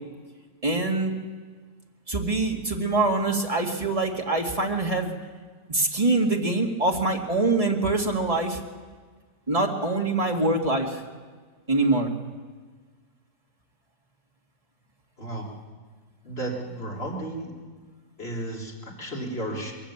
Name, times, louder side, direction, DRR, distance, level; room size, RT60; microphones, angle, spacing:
voice 1, 0.6-1.2 2.1-5.1 5.7-8.6 9.5-11.0 11.7-12.1, right 2 dB, 20° right, 1 dB, 2.1 m, -24 dB
voice 2, 15.2-15.5 16.2-17.5 18.2-19.7, right 1 dB, 35° left, -3 dB, 4.2 m, -33 dB
22.0 x 15.0 x 8.7 m, 1.5 s
omnidirectional pair, 1.8 m